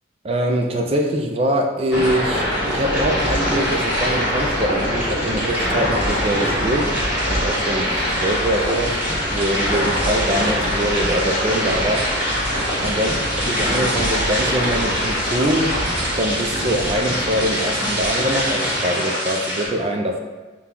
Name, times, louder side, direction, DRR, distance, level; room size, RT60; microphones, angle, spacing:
voice 1, 0.2-6.9 7.2-9.1 9.3-12.4 12.8-13.1 13.5-15.7 16.2-20.2, equal, 30° right, 2 dB, 0.4 m, -23 dB
sound 1, 1.9-19.7, equal, 10° right, 1.3 m, -22 dB
5.7 x 2.3 x 3.7 m, 1.3 s
head